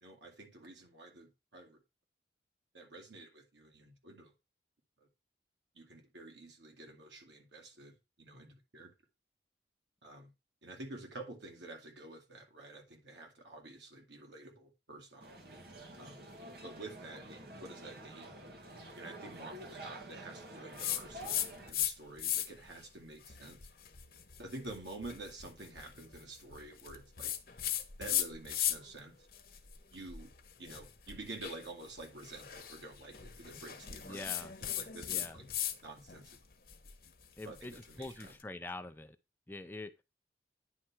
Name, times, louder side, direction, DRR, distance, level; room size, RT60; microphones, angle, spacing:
voice 1, 0.0-1.8 2.7-4.3 5.0-5.1 5.7-8.9 10.0-10.3 10.6-15.3 16.0-16.2 16.6-18.4 19.0-23.6 24.4-27.3 28.0-29.1 29.9-30.3 30.6-34.2 34.8-35.5 35.8-36.4 37.4-38.3, right 2 dB, 90° right, 2.2 m, -49 dB
sound 1, 15.2-21.7, right 1 dB, 55° right, 1.6 m, -49 dB
sound 2, 20.8-21.9 22.2-22.7 23.2-29.0 29.3-35.8 36.1-38.3, left 11 dB, 55° left, 1.0 m, -38 dB
voice 2, 34.0-34.5 35.1-35.4 37.4-39.2 39.5-39.9, left 2 dB, 10° left, 0.4 m, -44 dB
9.7 x 3.3 x 5.9 m
head